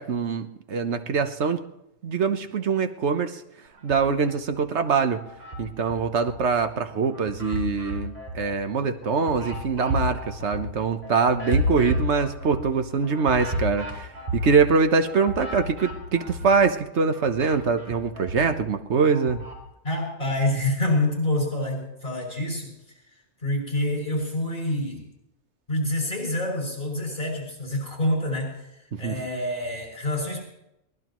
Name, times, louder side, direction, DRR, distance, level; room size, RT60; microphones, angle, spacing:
voice 1, 0.0-1.6 2.0-3.4 3.8-5.2 5.6-19.4 28.9-29.2, right 5 dB, 75° right, 8 dB, 1.3 m, -24 dB
sound 1, 3.8-4.6 5.0-6.6 7.0-16.7 17.0-19.6, left 1 dB, 60° right, 5.2 m, -32 dB
voice 2, 19.8-22.7 23.4-25.0 25.7-28.7 29.0-30.5, left 1 dB, 50° left, 0 dB, 7.3 m, -27 dB
23.0 x 19.5 x 3.1 m, 0.84 s
omnidirectional pair, 1.2 m